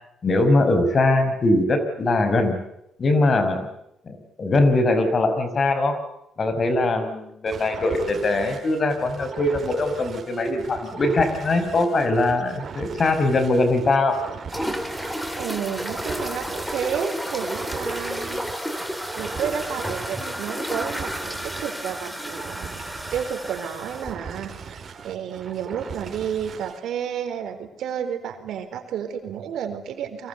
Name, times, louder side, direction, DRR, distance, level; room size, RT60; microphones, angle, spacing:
voice 1, 0.2-2.6 3.0-3.7 4.1-6.0 6.4-14.2, left 2 dB, 40° left, 9 dB, 5.3 m, -21 dB
sound 1, 7.5-26.8, right 6 dB, 50° right, 4.4 m, -40 dB
sound 2, 14.5-24.1, equal, 5° left, 3.8 m, -31 dB
voice 2, 15.4-18.4 19.1-22.8 23.1-30.3, right 8 dB, 75° right, 8 dB, 4.2 m, -31 dB
30.0 x 24.0 x 8.2 m, 0.82 s
cardioid pair, 90°, 0 cm